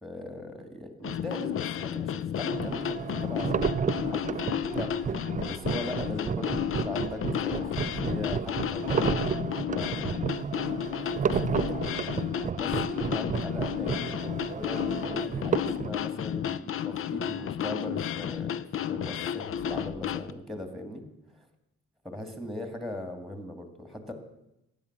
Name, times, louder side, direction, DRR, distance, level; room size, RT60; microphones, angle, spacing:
voice 1, 0.0-10.4 11.1-12.0 12.5-18.6 18.9-21.0 21.3-21.5 22.0-24.1, left 1 dB, ahead, 7 dB, 2.1 m, -40 dB
sound 1, 1.0-20.3, left 9 dB, 45° left, 0.5 m, -32 dB
sound 2, 2.5-16.0, right 7 dB, 25° right, 0.4 m, -32 dB
12.5 x 8.9 x 6.0 m, 0.86 s
cardioid pair, 90°, 30 cm